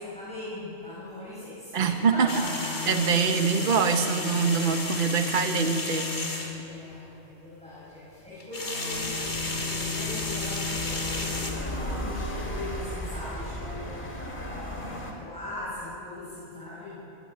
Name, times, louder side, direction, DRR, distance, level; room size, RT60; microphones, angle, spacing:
voice 1, 0.0-2.9 4.6-5.0 6.6-17.0, left 1 dB, 5° left, -10 dB, 7.9 m, -40 dB
voice 2, 1.7-2.3 2.9-6.1, right 6 dB, 45° right, 6 dB, 1.3 m, -24 dB
sound 1, 2.3-6.6 8.4-11.5, left 3 dB, 60° left, 3.1 m, -31 dB
sound 2, 8.9-15.1, left 1 dB, 40° left, 3.1 m, -36 dB
22.5 x 21.0 x 9.3 m, 2.9 s
omnidirectional pair, 1.3 m